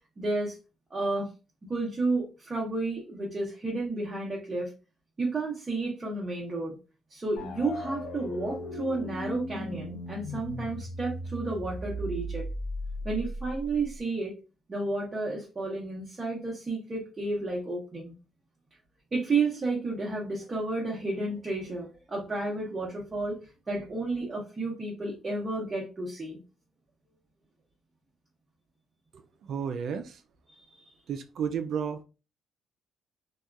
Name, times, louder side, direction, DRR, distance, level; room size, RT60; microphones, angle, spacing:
voice 1, 0.2-0.6 0.9-1.3 1.7-4.7 5.2-6.8 7.1-12.5 13.0-14.3 14.7-18.1 19.1-23.4 23.7-26.4 30.5-30.9, right 3 dB, 30° right, -2 dB, 0.8 m, -31 dB
sound 1, 7.4-14.0, equal, 85° left, 0.6 m, -37 dB
voice 2, 29.4-30.2 31.1-32.0, right 7 dB, 65° right, 9 dB, 0.3 m, -32 dB
2.8 x 2.2 x 2.3 m, 0.31 s
cardioid pair, 90°, 0 cm